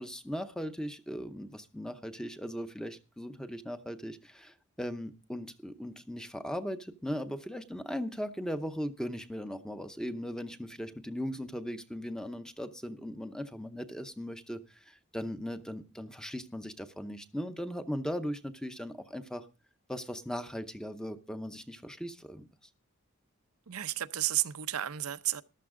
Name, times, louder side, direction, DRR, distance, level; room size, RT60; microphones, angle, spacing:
voice 1, 0.0-19.5 19.9-22.5, equal, 5° left, 0.7 m, -38 dB
voice 2, 23.7-25.4, right 13 dB, 80° right, 0.7 m, -32 dB
14.0 x 12.0 x 3.7 m
head